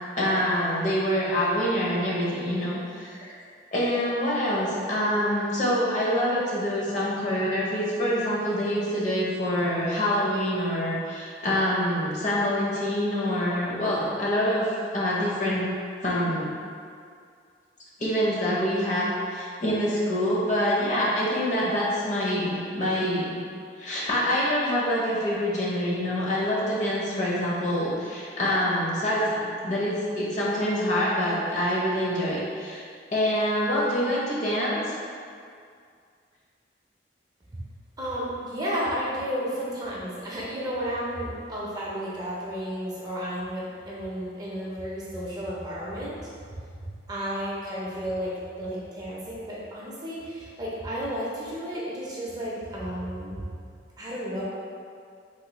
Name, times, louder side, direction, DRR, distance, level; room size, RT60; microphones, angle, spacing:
voice 1, 0.2-3.4 3.7-15.7 16.0-16.5 18.0-23.4 23.8-32.8 33.1-34.9, equal, 40° left, -6 dB, 0.6 m, -26 dB
voice 2, 38.0-46.2 46.5-46.6 47.1-53.4 54.0-54.4, equal, 20° right, -6 dB, 0.4 m, -32 dB
3.1 x 2.9 x 2.2 m, 2.2 s
head